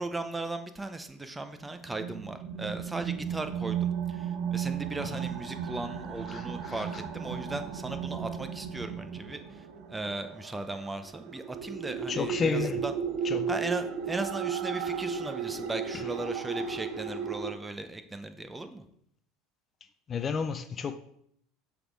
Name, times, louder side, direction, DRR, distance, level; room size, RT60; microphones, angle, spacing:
voice 1, 0.0-12.9 13.5-18.8, right 2 dB, 15° right, 0.7 m, -37 dB
sound 1, 1.8-17.5, right 7 dB, 60° right, 0.7 m, -35 dB
voice 2, 6.3-7.0 12.1-12.8 13.2-13.5 15.9-16.1 20.1-21.0, left 5 dB, 35° left, 0.4 m, -32 dB
7.1 x 3.6 x 4.6 m
supercardioid pair, 95°, 0 cm